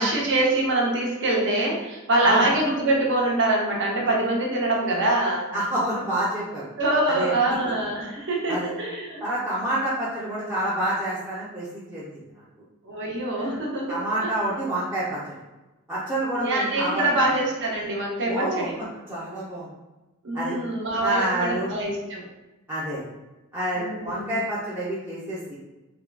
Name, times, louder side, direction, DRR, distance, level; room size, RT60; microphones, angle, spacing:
voice 1, 0.0-5.5 6.8-9.2 12.8-14.3 16.3-18.8 20.2-22.2 23.7-24.4, right 2 dB, 60° right, -2 dB, 0.7 m, -24 dB
voice 2, 5.5-6.6 7.1-7.3 8.5-8.7 9.2-12.4 13.3-13.5 13.9-15.4 15.9-17.3 18.2-18.7 19.1-19.7 20.3-20.6 21.0-21.7 22.7-23.0 23.5-25.5, right 1 dB, 10° right, -11 dB, 0.6 m, -28 dB
3.7 x 2.2 x 2.2 m, 1.1 s
head